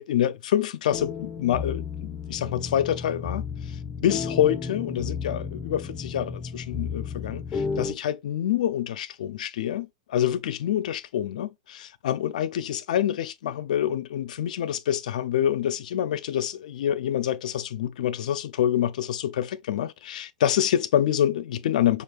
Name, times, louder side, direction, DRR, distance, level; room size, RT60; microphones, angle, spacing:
voice 1, 0.0-22.0, left 10 dB, 80° left, 0.6 m, -27 dB
sound 1, 0.9-7.9, left 5 dB, 25° left, 0.9 m, -33 dB
6.5 x 2.5 x 2.5 m
supercardioid pair, 135°, 4 cm